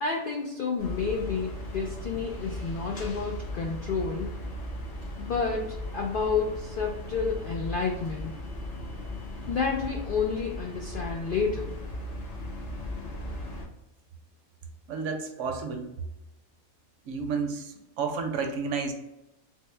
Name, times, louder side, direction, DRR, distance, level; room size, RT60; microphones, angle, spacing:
voice 1, 0.0-4.4 5.2-8.3 9.5-11.7, left 5 dB, 85° left, 1 dB, 0.4 m, -30 dB
sound 1, 0.8-13.7, left 1 dB, 40° left, 0.6 m, -37 dB
voice 2, 14.9-15.9 17.0-18.9, right 5 dB, 70° right, 4 dB, 0.8 m, -31 dB
3.6 x 2.0 x 3.2 m, 0.89 s
omnidirectional pair, 1.4 m